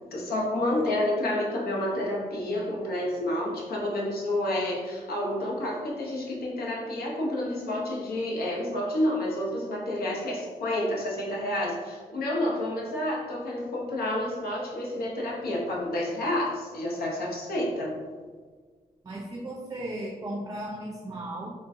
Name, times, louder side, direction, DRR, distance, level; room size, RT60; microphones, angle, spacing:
voice 1, 0.0-17.9, left 1 dB, 80° left, -3 dB, 0.8 m, -29 dB
voice 2, 19.0-21.5, right 1 dB, 25° right, 0 dB, 0.4 m, -36 dB
3.8 x 2.2 x 2.5 m, 1.5 s
cardioid pair, 50°, 16 cm